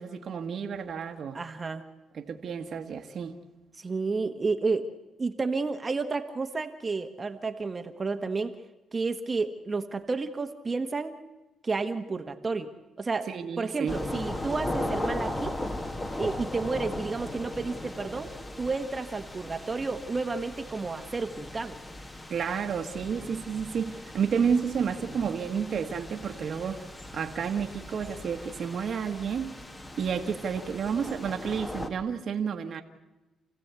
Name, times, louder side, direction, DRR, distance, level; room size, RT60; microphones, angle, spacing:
voice 1, 0.0-1.4 2.1-3.4 13.3-14.0 22.3-26.8 27.1-29.6 30.0-32.8, right 7 dB, 55° right, 4 dB, 1.5 m, -31 dB
voice 2, 1.3-1.8 3.8-4.9 5.2-8.5 8.9-11.2 11.6-12.7 13.0-13.3 13.6-15.6 16.2-18.3 18.6-21.8, right 4 dB, 30° right, 7 dB, 1.3 m, -31 dB
sound 1, 13.9-31.9, left 1 dB, 20° left, 1.8 m, -38 dB
28.5 x 16.0 x 8.2 m, 1.1 s
cardioid pair, 90°, 0 cm